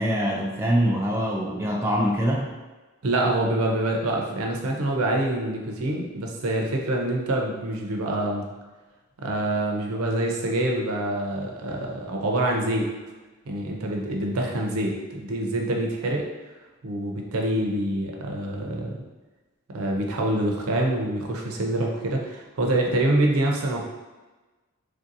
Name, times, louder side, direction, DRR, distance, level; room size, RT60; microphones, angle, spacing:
voice 1, 0.0-2.5, equal, 10° right, -3 dB, 0.3 m, -24 dB
voice 2, 3.0-8.5 9.2-12.9 13.5-16.3 16.8-19.0 19.7-23.8, right 1 dB, 90° right, 1 dB, 0.5 m, -26 dB
3.3 x 2.6 x 2.6 m, 1.2 s
head